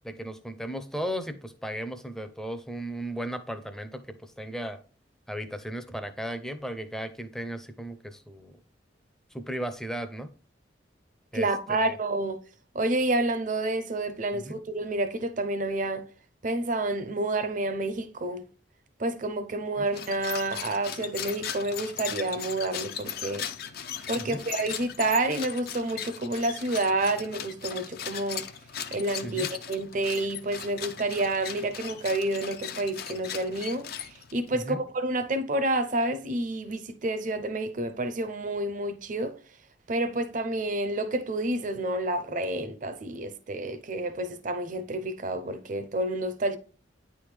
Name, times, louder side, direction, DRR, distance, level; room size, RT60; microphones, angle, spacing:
voice 1, 0.0-4.8 5.3-8.5 9.3-10.3 11.3-12.0 14.3-14.6 19.8-19.9 24.2-24.4 29.2-29.5 34.5-34.8, equal, 5° left, 0.5 m, -36 dB
voice 2, 11.3-12.4 12.7-16.1 16.4-18.4 19.0-23.5 24.1-28.4 28.9-39.4 39.9-46.6, right 2 dB, 45° right, 0.6 m, -29 dB
sound 1, 19.9-34.5, left 8 dB, 55° left, 0.5 m, -38 dB
9.2 x 3.5 x 3.2 m
head